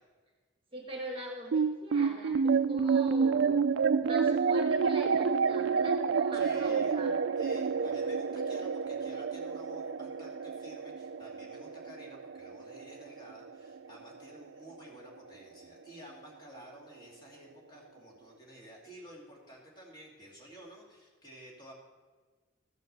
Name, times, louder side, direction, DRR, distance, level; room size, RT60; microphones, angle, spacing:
voice 1, 0.7-3.6 4.0-7.1, right 1 dB, 25° right, 1 dB, 1.4 m, -43 dB
sound 1, 1.5-14.1, right 5 dB, 60° right, 0.4 m, -29 dB
voice 2, 6.3-7.0 7.4-21.7, right 1 dB, 20° left, -3 dB, 2.3 m, -52 dB
13.5 x 6.2 x 6.8 m, 1.4 s
head